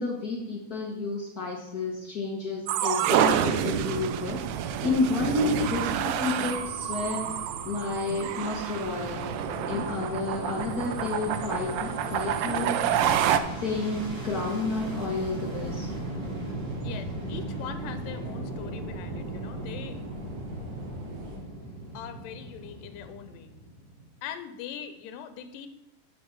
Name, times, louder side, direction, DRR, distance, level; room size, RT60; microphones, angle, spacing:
voice 1, 0.0-4.4 4.8-7.3 7.6-9.3 9.6-12.9 13.6-15.9, left 3 dB, 50° left, -1 dB, 1.1 m, -30 dB
sound 1, 2.7-13.4, right 10 dB, 85° right, 2.3 m, -28 dB
voice 2, 3.4-3.7 5.5-5.7 16.8-20.0 21.9-23.5 24.2-25.7, left 8 dB, 80° left, 10 dB, 2.5 m, -41 dB
sound 2, 3.4-21.4, right 2 dB, 70° right, 3.0 m, -44 dB
Fixed-wing aircraft airplane, 8.9-24.1, right 1 dB, 45° right, 3.4 m, -37 dB
10.5 x 7.3 x 4.7 m, 0.85 s
omnidirectional pair, 3.8 m